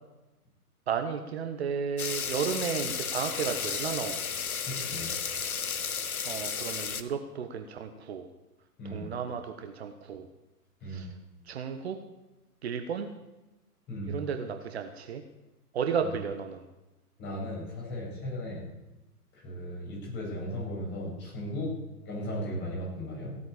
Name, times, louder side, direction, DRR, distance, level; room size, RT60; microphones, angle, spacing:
voice 1, 0.9-4.2 6.2-8.3 8.8-10.3 10.9-11.1 11.4-12.0 12.6-13.1 14.0-15.2 15.7-16.6, right 7 dB, 40° right, 7 dB, 1.3 m, -33 dB
sound 1, 2.0-7.0, left 6 dB, 65° left, 1.3 m, -33 dB
voice 2, 4.6-5.1 8.8-9.1 10.8-11.1 13.9-14.2 17.2-18.7 19.3-21.7 22.0-23.4, equal, 20° left, -4 dB, 7.9 m, -36 dB
16.5 x 9.3 x 8.7 m, 1.0 s
figure-of-eight pair, 120°, 46 cm